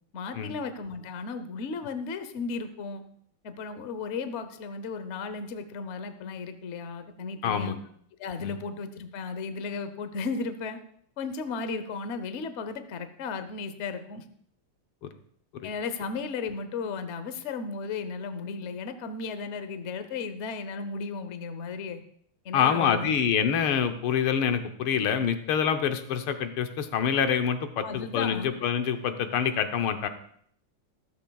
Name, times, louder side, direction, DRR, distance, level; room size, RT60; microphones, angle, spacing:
voice 1, 0.1-3.0 3.4-7.8 8.2-10.8 11.2-14.2 15.6-22.0 22.4-23.2 27.8-28.5, left 4 dB, 60° left, 10 dB, 0.7 m, -35 dB
voice 2, 7.4-7.8 8.4-8.5 15.6-15.7 22.5-30.1, left 7 dB, 80° left, 8 dB, 1.7 m, -26 dB
13.5 x 13.5 x 2.3 m, 0.65 s
omnidirectional pair, 2.3 m